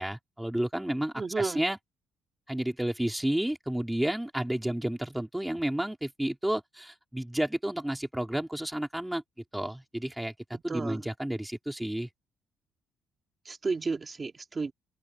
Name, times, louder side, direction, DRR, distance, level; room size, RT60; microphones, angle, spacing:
voice 1, 0.0-1.8 2.5-9.2 9.5-10.3 10.6-12.1, right 1 dB, 5° right, 3.5 m, -31 dB
voice 2, 1.1-1.6 10.5-11.0 13.4-14.7, right 4 dB, 20° right, 2.6 m, -32 dB
open air
cardioid pair, 160°, 0 cm